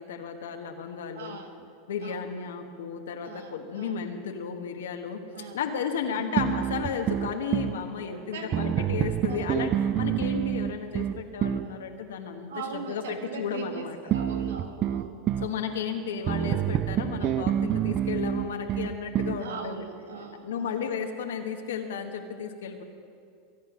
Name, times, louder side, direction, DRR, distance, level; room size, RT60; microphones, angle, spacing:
voice 1, 0.0-1.4 1.9-5.2 5.5-14.0 15.4-19.8 20.4-22.8, left 6 dB, 85° left, 4 dB, 1.4 m, -33 dB
voice 2, 1.1-1.7 2.0-2.4 3.2-4.1 5.3-5.6 6.1-6.5 8.0-8.9 9.2-9.6 11.6-11.8 12.5-16.2 17.2-17.6 19.4-21.0, right 5 dB, 85° right, 5 dB, 1.8 m, -42 dB
sound 1, 6.4-7.8 8.5-11.7 14.1-15.5 16.3-19.4, right 10 dB, 40° right, 0.6 m, -27 dB
23.0 x 9.3 x 6.2 m, 2.3 s
hypercardioid pair, 105°, 0 cm